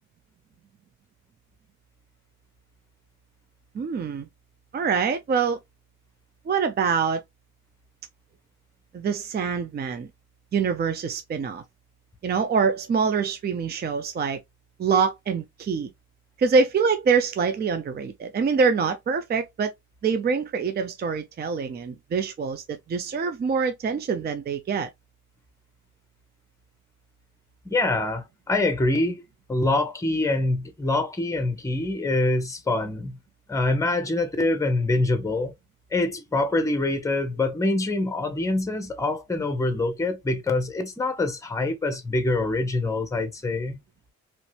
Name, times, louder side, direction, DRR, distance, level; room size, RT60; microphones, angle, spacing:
voice 1, 3.7-4.3 4.7-5.6 6.5-7.2 8.9-10.1 10.5-11.6 12.2-14.4 14.8-15.9 16.4-19.7 20.0-24.9, right 5 dB, 35° right, 0.5 m, -25 dB
voice 2, 27.6-29.2 29.5-33.2 33.5-35.5 35.9-43.8, left 2 dB, 10° left, 0.8 m, -25 dB
3.0 x 2.6 x 3.2 m
cardioid pair, 90°, 30 cm